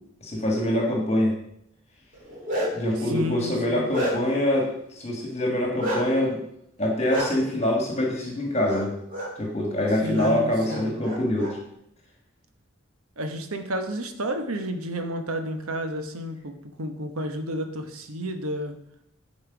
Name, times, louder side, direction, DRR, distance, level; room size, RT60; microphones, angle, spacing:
voice 1, 0.2-1.3 2.7-6.4 6.8-9.0 9.4-11.6, left 1 dB, 30° left, 0 dB, 1.5 m, -25 dB
Bark, 2.1-2.9 3.4-4.4 5.8-6.0 7.1-7.3 8.6-8.8 9.1-9.3 10.1-10.3 10.6-11.5, equal, 40° right, 2.7 m, -29 dB
voice 2, 3.1-3.9 10.0-11.0 13.2-18.7, equal, 90° right, 6 dB, 1.1 m, -31 dB
10.0 x 4.5 x 5.9 m, 0.76 s
head